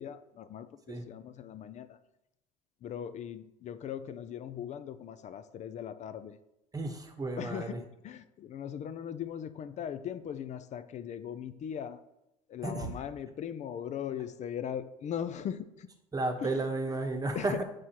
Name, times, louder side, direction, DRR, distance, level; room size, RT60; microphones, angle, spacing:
voice 1, 0.0-2.0 2.8-6.4 7.4-12.0 12.5-15.9 16.4-16.5 17.4-17.6, left 9 dB, 40° left, 13 dB, 0.4 m, -39 dB
voice 2, 6.7-7.8 12.6-12.9 16.1-17.6, right 2 dB, 20° right, 5 dB, 1.0 m, -33 dB
7.5 x 4.8 x 2.9 m, 0.90 s
hypercardioid pair, 75°, 18 cm